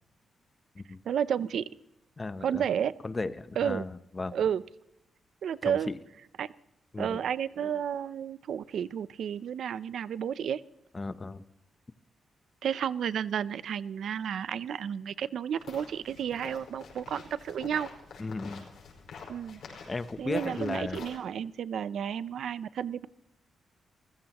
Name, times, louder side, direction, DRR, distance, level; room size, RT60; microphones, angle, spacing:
voice 1, 1.1-1.7 2.4-2.9 3.6-3.9 4.3-4.6 5.4-5.9 6.4-6.5 7.0-10.6 12.6-17.9 19.3-19.6 20.2-23.1, right 8 dB, 75° right, 17 dB, 0.5 m, -31 dB
voice 2, 2.2-2.6 3.0-4.3 5.6-6.0 6.9-7.2 10.9-11.4 18.2-18.7 19.9-21.0, left 3 dB, 25° left, 14 dB, 0.7 m, -35 dB
sound 1, 15.6-21.2, left 5 dB, 70° left, 5.4 m, -47 dB
28.0 x 15.0 x 3.0 m, 0.83 s
wide cardioid pair, 130°, 0 cm